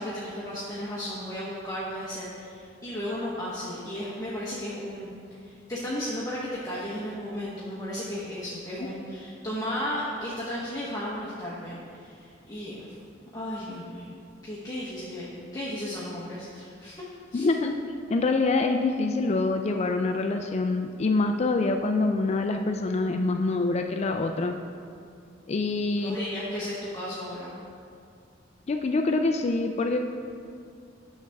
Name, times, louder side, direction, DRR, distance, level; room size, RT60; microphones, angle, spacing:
voice 1, 0.0-5.1 5.4-12.9 13.3-14.1 14.4-17.0 17.3-17.5 25.9-27.6, equal, 20° left, -8 dB, 1.1 m, -34 dB
voice 2, 17.3-17.7 18.1-24.6 25.5-26.2 28.7-30.0, left 3 dB, 35° left, 5 dB, 0.3 m, -25 dB
9.6 x 6.5 x 3.5 m, 2.4 s
head